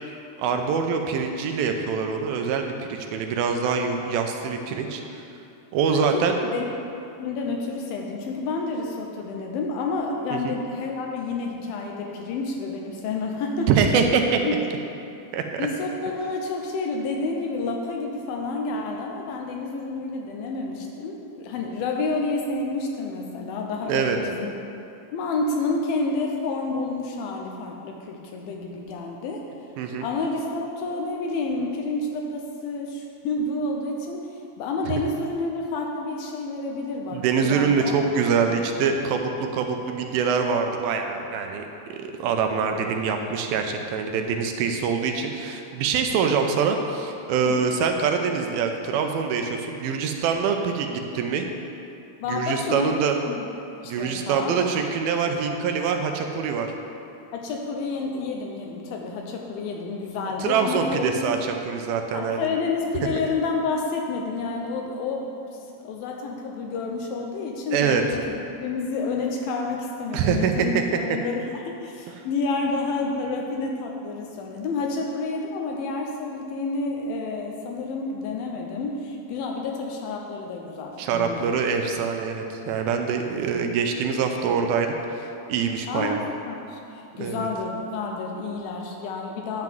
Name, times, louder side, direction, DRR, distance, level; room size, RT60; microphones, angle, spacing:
voice 1, 0.4-5.2 5.7-6.4 10.3-10.5 13.7-14.4 15.3-15.6 23.9-24.2 29.8-30.1 37.1-41.6 41.9-51.5 52.3-53.2 53.8-56.7 60.4-62.5 67.7-68.0 70.1-70.7 81.0-85.2 85.5-86.2 87.1-87.5, right 6 dB, 80° right, 4 dB, 2.3 m, -24 dB
voice 2, 5.9-6.7 7.2-13.7 14.4-14.5 15.6-24.6 25.1-29.4 30.0-38.0 38.4-38.6 42.7-42.8 47.5-47.6 52.2-52.9 53.3-53.5 53.8-54.6 57.3-61.3 62.1-65.3 65.8-81.5 83.4-83.7 84.4-84.6 85.9-86.2 86.5-89.6, left 3 dB, 80° left, 1 dB, 2.3 m, -29 dB
10.5 x 3.8 x 7.5 m, 2.7 s
omnidirectional pair, 4.5 m